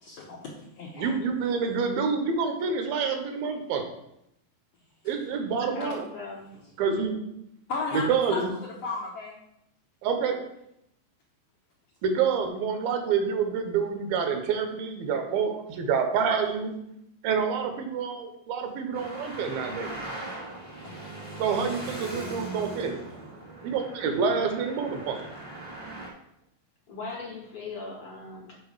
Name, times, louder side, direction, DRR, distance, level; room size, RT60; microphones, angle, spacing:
voice 1, 0.0-1.1 7.7-9.4 20.8-21.0, left 3 dB, 80° left, -2 dB, 1.4 m, -35 dB
voice 2, 1.0-3.8 5.1-6.1 6.8-7.2 7.9-8.5 10.0-10.4 12.0-16.7 17.2-20.0 21.4-23.0 23.6-25.2, right 6 dB, 85° right, 5 dB, 2.8 m, -27 dB
voice 3, 5.7-6.6 26.9-28.5, left 3 dB, 60° left, -2 dB, 1.5 m, -38 dB
Traffic noise roadway noise, 18.9-26.1, right 1 dB, 10° left, 0.8 m, -40 dB
6.9 x 5.2 x 4.7 m, 0.79 s
omnidirectional pair, 4.1 m